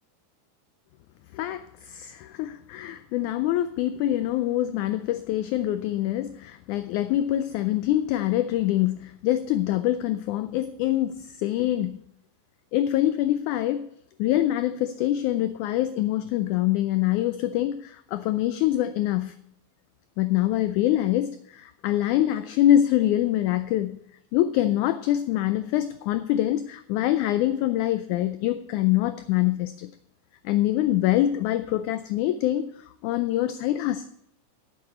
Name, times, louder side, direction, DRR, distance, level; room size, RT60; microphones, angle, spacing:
voice 1, 1.3-12.0 12.7-13.9 14.2-19.3 20.2-24.0 24.3-29.9 30.5-32.7 33.0-34.1, left 13 dB, 85° left, 11 dB, 1.8 m, -25 dB
8.5 x 7.0 x 8.2 m, 0.75 s
omnidirectional pair, 3.9 m